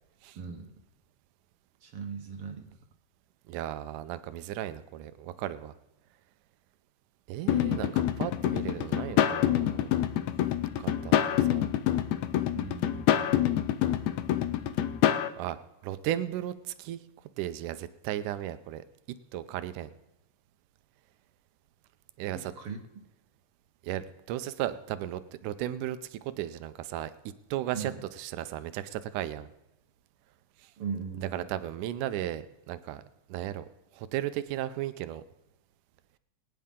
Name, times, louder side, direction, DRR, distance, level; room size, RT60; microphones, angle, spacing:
voice 1, 0.3-0.7 1.8-2.7 12.5-13.4 22.3-22.8 27.7-28.0 30.8-31.5, right 6 dB, 60° right, 4 dB, 1.6 m, -39 dB
voice 2, 3.5-5.7 7.3-9.9 10.8-11.7 15.4-15.6 15.8-17.0 17.4-18.8 19.3-19.9 22.2-22.5 23.8-27.1 27.5-29.5 31.3-33.0 33.3-33.7 33.9-35.2, right 12 dB, 85° right, 12 dB, 2.2 m, -35 dB
sound 1, 7.5-15.3, left 11 dB, 75° left, 1.8 m, -27 dB
22.0 x 9.7 x 3.7 m, 0.91 s
omnidirectional pair, 3.5 m